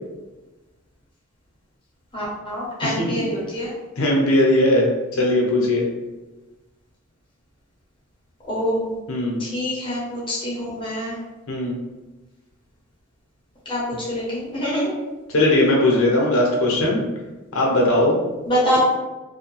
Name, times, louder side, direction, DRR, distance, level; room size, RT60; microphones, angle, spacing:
voice 1, 2.1-3.7 8.5-8.9 9.4-11.2 13.7-14.9 18.5-18.8, equal, 25° left, -7 dB, 0.7 m, -25 dB
voice 2, 2.8-3.1 4.0-4.9 5.2-5.9 9.1-9.4 11.5-11.8 15.3-17.0 17.5-18.2, left 1 dB, 65° left, -2 dB, 0.6 m, -19 dB
2.5 x 2.1 x 3.0 m, 1.1 s
head